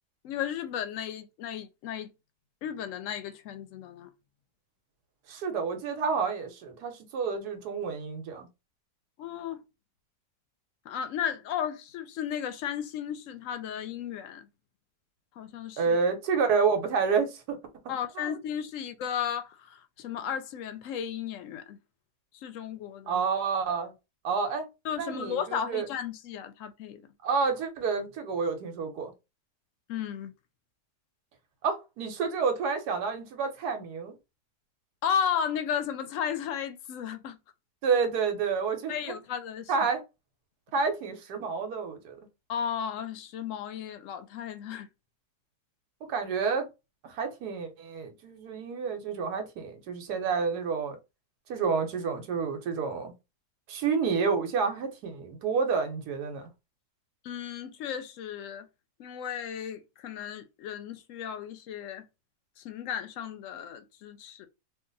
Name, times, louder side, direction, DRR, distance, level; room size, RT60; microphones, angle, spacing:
voice 1, 0.2-2.1 2.6-4.1 9.2-9.6 10.9-14.5 15.4-16.0 17.9-21.8 22.4-23.2 24.8-27.0 29.9-30.3 35.0-37.4 38.9-39.7 42.5-44.9 57.2-58.7 59.0-62.0 62.6-64.5, left 8 dB, 70° left, 0.8 m, -34 dB
voice 2, 5.3-8.5 15.8-17.6 18.1-18.3 23.1-23.9 24.2-24.7 25.0-25.9 27.2-29.1 31.6-34.1 37.8-38.9 39.7-40.0 40.7-42.2 46.1-46.7 47.0-51.0 51.5-53.1 53.7-56.5, right 5 dB, 90° right, 1.3 m, -29 dB
2.8 x 2.4 x 3.8 m
omnidirectional pair, 1.6 m